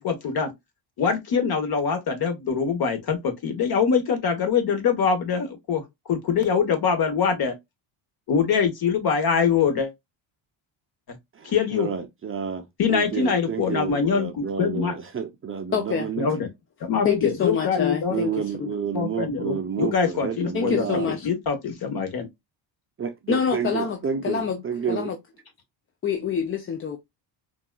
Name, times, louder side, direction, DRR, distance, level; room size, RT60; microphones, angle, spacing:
voice 1, 0.0-0.5 1.0-5.8 6.1-7.5 8.3-9.9 11.4-11.9 12.8-14.9 16.2-16.5 16.8-18.2 18.9-20.8 21.2-22.3, left 6 dB, 50° left, 1.2 m, -23 dB
voice 2, 11.3-16.3 18.1-21.2 23.0-25.1, right 7 dB, 30° right, 0.5 m, -30 dB
voice 3, 15.7-16.1 17.0-18.3 18.6-18.7 20.5-21.3 23.3-24.0 24.2-24.6 24.9-25.2 26.0-27.0, left 6 dB, 30° left, 0.4 m, -26 dB
3.9 x 2.4 x 2.3 m
cardioid pair, 115°, 47 cm